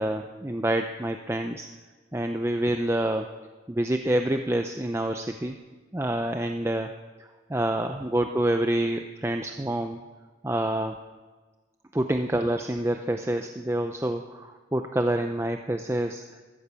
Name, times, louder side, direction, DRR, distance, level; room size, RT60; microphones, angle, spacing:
voice 1, 0.0-1.7 2.1-3.3 3.7-5.6 5.9-10.0 10.4-11.0 11.9-16.4, right 1 dB, 15° right, 5 dB, 0.5 m, -27 dB
15.0 x 13.5 x 6.9 m, 1.3 s
head